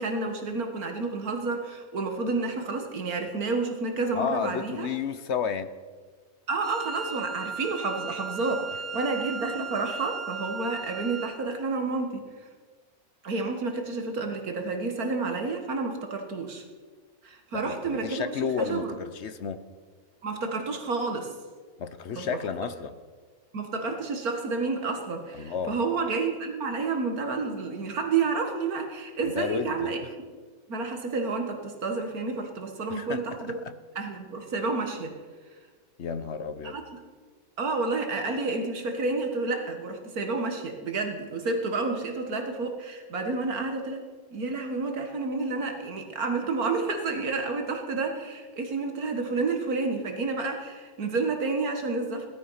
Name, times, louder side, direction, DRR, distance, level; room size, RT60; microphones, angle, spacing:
voice 1, 0.0-4.9 6.5-8.7 8.9-12.2 13.2-16.6 17.2-18.9 20.2-21.3 22.1-22.4 23.5-30.0 30.7-33.6 34.0-35.1 36.6-36.8 37.6-44.0 44.3-52.3, right 3 dB, 75° right, 5 dB, 2.1 m, -30 dB
voice 2, 4.1-5.7 17.5-19.6 21.8-23.0 25.3-25.8 29.2-29.9 32.9-33.7 36.0-36.8, left 6 dB, 55° left, 11 dB, 0.9 m, -32 dB
Wind instrument woodwind instrument, 6.6-11.5, right 5 dB, 20° right, 1.2 m, -37 dB
17.5 x 12.5 x 5.7 m, 1.5 s
omnidirectional pair, 1.6 m